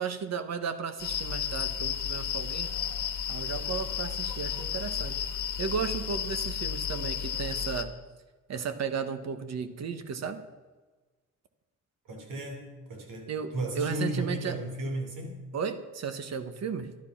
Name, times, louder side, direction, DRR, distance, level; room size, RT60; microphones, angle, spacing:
voice 1, 0.0-2.7 3.3-5.2 5.6-7.9 8.5-10.4 13.3-14.6 15.5-17.0, right 6 dB, 55° right, 11 dB, 1.2 m, -34 dB
sound 1, 1.0-7.8, left 9 dB, 75° left, 1.4 m, -33 dB
voice 2, 12.1-15.4, right 1 dB, 90° right, 3 dB, 3.4 m, -34 dB
13.0 x 11.5 x 5.9 m, 1.3 s
cardioid pair, 135°, 31 cm